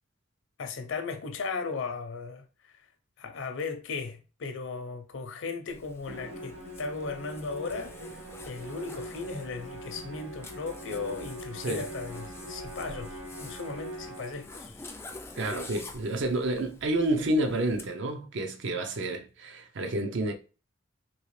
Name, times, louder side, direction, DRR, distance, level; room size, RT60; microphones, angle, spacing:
voice 1, 0.6-2.8 3.2-14.8, left 4 dB, 70° left, 0.6 m, -37 dB
Zipper (clothing), 5.7-17.9, left 2 dB, 10° left, 0.3 m, -47 dB
Musical instrument, 6.1-14.6, right 1 dB, 80° right, 1.0 m, -42 dB
voice 2, 15.4-20.3, right 1 dB, 65° right, 0.6 m, -29 dB
3.0 x 2.8 x 3.1 m
head